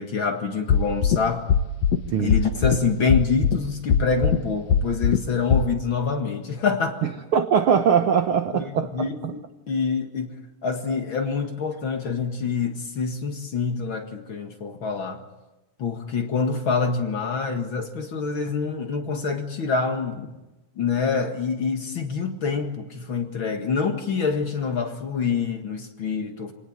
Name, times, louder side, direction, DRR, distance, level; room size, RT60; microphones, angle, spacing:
voice 1, 0.0-1.5 2.2-7.1 8.5-10.4 10.6-15.2 15.8-20.3 20.8-26.5, left 5 dB, 45° left, 5 dB, 2.2 m, -26 dB
sound 1, 0.7-1.2 1.5-2.0 2.3-2.8 3.1-3.6 3.9-4.4 4.7-5.2 5.5-5.6, left 7 dB, 60° left, 2.1 m, -19 dB
voice 2, 7.0-8.9 9.2-9.3, right 7 dB, 70° right, 9 dB, 1.3 m, -21 dB
26.5 x 19.0 x 8.9 m, 1.0 s
omnidirectional pair, 3.8 m